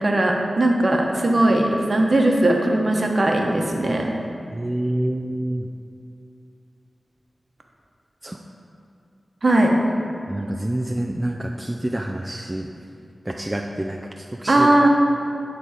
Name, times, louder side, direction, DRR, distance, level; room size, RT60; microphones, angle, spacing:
voice 1, 0.0-4.1 9.4-9.8 14.5-14.9, right 1 dB, 50° right, 1 dB, 1.0 m, -19 dB
voice 2, 4.5-5.7 8.2-8.4 10.3-12.7 13.3-14.7, right 1 dB, 20° right, 1 dB, 0.4 m, -27 dB
12.0 x 4.0 x 4.9 m, 2.5 s
wide cardioid pair, 70°, 0 cm